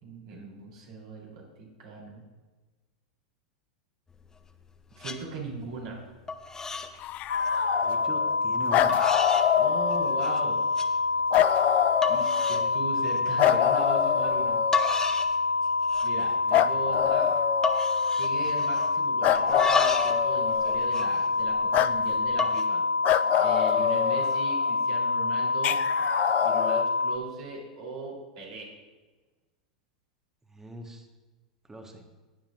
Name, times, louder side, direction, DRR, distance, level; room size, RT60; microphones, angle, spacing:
voice 1, 0.0-2.2 5.0-6.0 9.5-10.6 12.1-14.6 16.0-17.3 18.1-22.8 23.4-25.8 26.4-28.7, right 3 dB, 65° right, -2 dB, 3.4 m, -38 dB
sound 1, 4.1-4.7 5.0-5.2 5.6-6.0 6.3-6.9 7.2-7.6 8.3-8.4 8.9-9.5 9.9-10.4 10.8-10.9 11.4-11.5 12.0-12.7 13.1-13.3 14.4-14.5 14.7-15.4 15.7-16.2 16.5-16.6 16.9-17.2 17.6-19.0 19.4-20.2 20.5-21.8 22.3-22.6, left 4 dB, 15° left, 0.8 m, -32 dB
sound 2, 7.0-8.4 8.7-10.4 11.3-12.8 13.4-15.0 16.5-18.2 19.2-20.9 21.7-21.9 23.0-24.7 25.6-26.8, left 12 dB, 40° left, 0.3 m, -26 dB
sound 3, 7.3-27.2, left 3 dB, 85° left, 0.6 m, -27 dB
voice 2, 7.8-9.0 16.5-16.6 30.5-31.0 31.7-32.0, right 1 dB, 10° right, 4 dB, 1.4 m, -41 dB
19.0 x 7.3 x 2.5 m, 1.3 s
hypercardioid pair, 95°, 4 cm